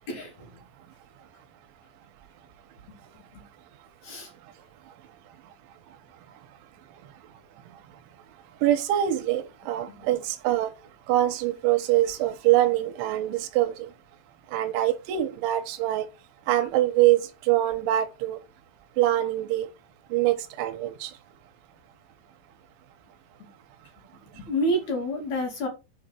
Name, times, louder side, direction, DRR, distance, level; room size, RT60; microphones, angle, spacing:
voice 1, 0.1-0.6 2.9-3.0 3.3-3.4 4.0-4.3 9.9-10.0 24.3-25.7, equal, 45° left, 3.1 m, -29 dB
voice 2, 8.6-10.7 11.1-13.9 14.5-16.1 16.5-18.4 19.0-19.7 20.1-21.1, right 13 dB, 75° right, 3.2 m, -24 dB
8.1 x 5.1 x 4.5 m
omnidirectional pair, 6.0 m